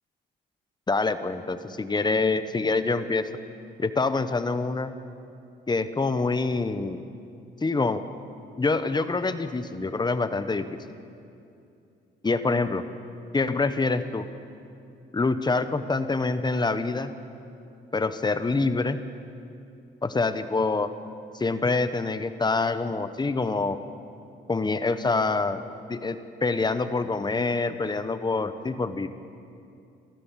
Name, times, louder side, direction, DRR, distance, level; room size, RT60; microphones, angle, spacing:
voice 1, 0.9-3.3 3.8-4.9 5.7-7.0 7.6-8.0 8.6-10.8 12.2-12.8 13.3-14.3 15.1-17.1 17.9-19.0 20.0-20.9 21.3-23.8 24.5-25.6 25.9-29.1, left 3 dB, 20° left, 11 dB, 1.2 m, -26 dB
27.5 x 14.0 x 7.5 m, 2.6 s
cardioid pair, 90°, 20 cm